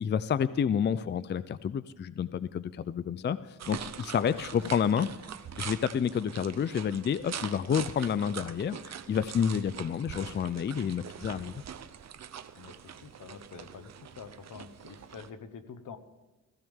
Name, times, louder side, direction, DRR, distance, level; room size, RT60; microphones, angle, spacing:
voice 1, 0.0-5.1 5.6-11.5, left 7 dB, 35° left, 16 dB, 0.4 m, -29 dB
sound 1, 3.6-15.3, right 8 dB, 55° right, 0.7 m, -43 dB
voice 2, 12.5-16.0, left 6 dB, 75° left, 10 dB, 1.2 m, -46 dB
16.5 x 15.0 x 3.6 m, 1.1 s
cardioid pair, 95°, 32 cm